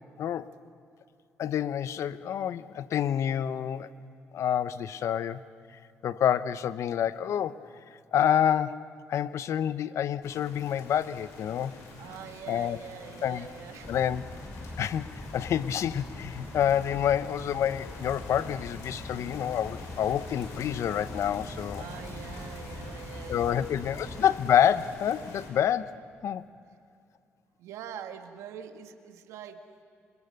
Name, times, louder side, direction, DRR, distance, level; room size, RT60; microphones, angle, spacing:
voice 1, 0.2-0.5 1.4-3.9 4.3-5.4 6.0-7.6 8.1-8.8 9.1-11.7 12.5-12.8 13.2-13.5 13.9-14.2 14.8-21.8 23.3-26.0 26.2-26.4, left 9 dB, 70° left, 14 dB, 0.9 m, -28 dB
sound 1, 10.2-25.5, left 3 dB, 85° left, 5.4 m, -46 dB
voice 2, 12.0-14.0 21.7-24.4 27.6-29.6, right 9 dB, 80° right, 6 dB, 1.9 m, -44 dB
sound 2, 13.8-24.3, left 1 dB, 20° left, 5.0 m, -43 dB
28.5 x 27.0 x 6.7 m, 2.4 s
supercardioid pair, 65°, 5 cm